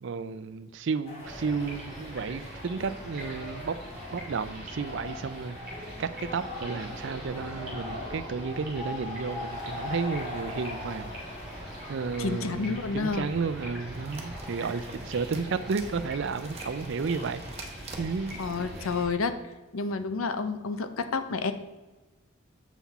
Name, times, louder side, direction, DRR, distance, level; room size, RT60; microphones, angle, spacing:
voice 1, 0.0-3.8 4.1-5.6 6.0-11.1 11.9-17.6 18.0-18.4, right 5 dB, 60° right, 13 dB, 0.4 m, -32 dB
sound 1, 1.0-18.1, left 2 dB, 30° left, 2.2 m, -42 dB
sound 2, 1.2-19.1, equal, 5° right, 2.7 m, -43 dB
voice 2, 12.2-13.3 18.4-19.3 19.7-21.5, left 4 dB, 80° left, 10 dB, 0.6 m, -30 dB
sound 3, 13.9-19.1, right 3 dB, 30° right, 1.0 m, -46 dB
7.1 x 5.9 x 4.1 m, 1.1 s
head